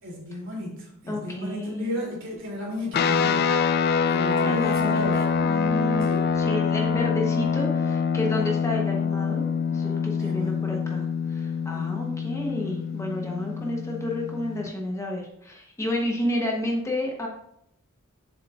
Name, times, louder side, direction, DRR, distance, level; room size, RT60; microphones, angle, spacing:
voice 1, 0.0-3.5 4.1-5.1 6.1-6.2 10.2-10.5 11.7-11.9, equal, 60° right, -2 dB, 2.8 m, -34 dB
voice 2, 1.0-2.0 4.4-6.1 6.4-17.3, left 1 dB, 15° left, 0 dB, 0.9 m, -31 dB
sound 1, 2.9-14.7, left 6 dB, 45° left, 0.3 m, -25 dB
7.3 x 7.1 x 2.4 m, 0.74 s
head